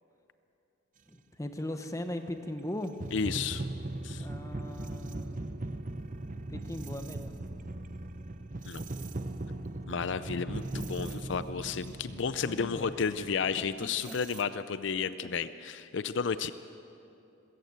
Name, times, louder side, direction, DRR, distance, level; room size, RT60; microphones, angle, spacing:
voice 1, 1.1-3.0 4.2-5.6 6.5-7.4 8.6-9.3 12.1-12.9 13.6-14.1, left 1 dB, 15° left, 7 dB, 1.1 m, -40 dB
sound 1, 1.8-1.9 2.8-14.4, right 2 dB, 45° right, 0.8 m, -39 dB
voice 2, 3.1-3.7 4.0-4.3 8.6-8.9 9.9-16.5, left 5 dB, 70° left, 13 dB, 0.5 m, -32 dB
20.5 x 16.5 x 8.1 m, 2.8 s
head